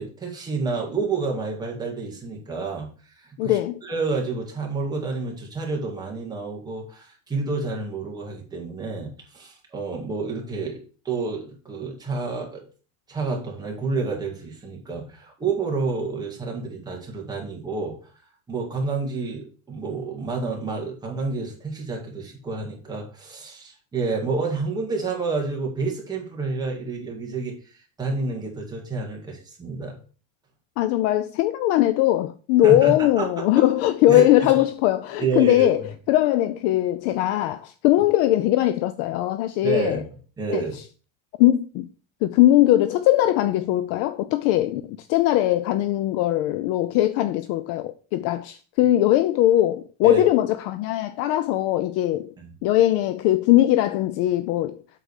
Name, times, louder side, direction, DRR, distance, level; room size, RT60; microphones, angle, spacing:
voice 1, 0.0-2.9 3.2-10.8 11.1-12.6 13.1-17.9 18.5-27.5 28.0-30.0 32.6-33.4 34.1-34.6 35.2-35.7 39.6-40.1 40.4-40.7 50.0-50.2 52.4-52.5, right 4 dB, 10° right, 2.0 m, -29 dB
voice 2, 3.4-3.8 30.8-40.0 40.5-40.7 41.4-41.9 42.2-52.3 52.6-54.8, left 14 dB, 40° left, 0.4 m, -20 dB
8.1 x 3.9 x 6.4 m
cardioid pair, 170°, 36 cm